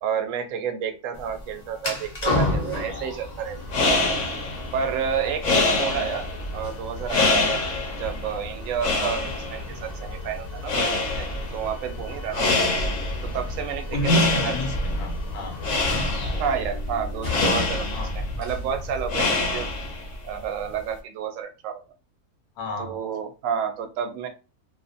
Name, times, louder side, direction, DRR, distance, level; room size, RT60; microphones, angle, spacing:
voice 1, 0.0-3.6 4.7-6.2 6.5-7.6 7.9-10.9 11.2-12.6 13.2-14.5 16.4-19.7 20.2-21.8 22.8-24.3, right 7 dB, 70° right, 6 dB, 0.9 m, -30 dB
sound 1, 1.1-21.0, left 2 dB, 45° left, 0.5 m, -34 dB
sound 2, 3.5-20.1, left 2 dB, 60° left, 0.9 m, -26 dB
voice 2, 13.9-15.6 17.9-18.1 22.6-23.0, equal, 85° left, 4 dB, 1.2 m, -27 dB
2.5 x 2.4 x 2.5 m, 0.30 s
omnidirectional pair, 1.6 m